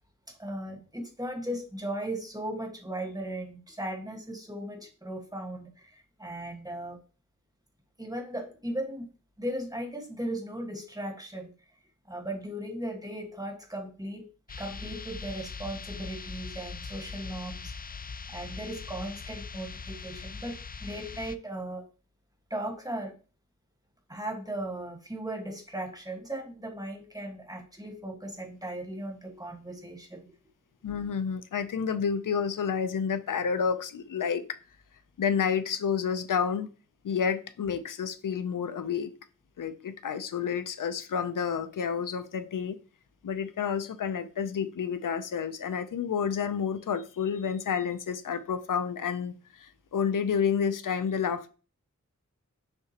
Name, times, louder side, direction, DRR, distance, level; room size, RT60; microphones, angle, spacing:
voice 1, 0.3-7.0 8.0-9.1 9.4-11.5 12.0-14.3 14.6-18.0 18.3-21.9 22.5-23.1 24.1-30.3, right 1 dB, 10° right, 3 dB, 1.4 m, -37 dB
sound 1, 14.5-21.4, left 5 dB, 30° left, 0.4 m, -41 dB
voice 2, 30.8-34.4 35.2-36.7 37.0-39.1 39.6-42.8 43.2-51.5, left 7 dB, 85° left, 12 dB, 0.5 m, -30 dB
6.7 x 5.8 x 2.8 m, 0.36 s
wide cardioid pair, 70°, 31 cm